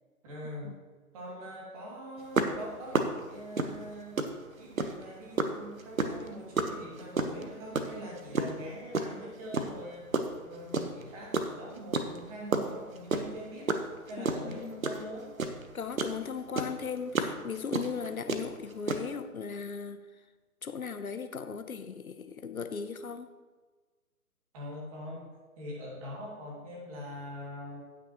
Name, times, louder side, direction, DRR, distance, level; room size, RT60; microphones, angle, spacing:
voice 1, 0.2-0.7 1.1-4.2 4.6-10.1 10.4-13.7 14.1-15.3 24.5-25.3 25.6-27.8, equal, 25° right, -3 dB, 2.4 m, -43 dB
sound 1, 2.3-5.1 5.4-9.1 9.5-11.1 11.3-16.2 16.5-19.0, right 3 dB, 65° right, 1.2 m, -30 dB
voice 2, 14.2-14.8 15.7-20.0 20.6-23.3, left 6 dB, 65° left, 9 dB, 0.8 m, -37 dB
18.0 x 6.3 x 3.0 m, 1.3 s
figure-of-eight pair, 140°, 45 cm